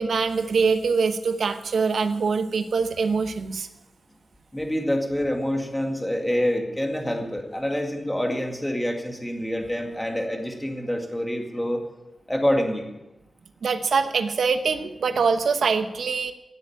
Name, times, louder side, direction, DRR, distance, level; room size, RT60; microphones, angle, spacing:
voice 1, 0.0-3.7 13.6-16.3, right 5 dB, 80° right, 8 dB, 1.0 m, -24 dB
voice 2, 4.5-11.8 12.3-12.9, equal, 5° left, 2 dB, 2.1 m, -26 dB
17.5 x 8.2 x 8.7 m, 0.99 s
wide cardioid pair, 170°, 0 cm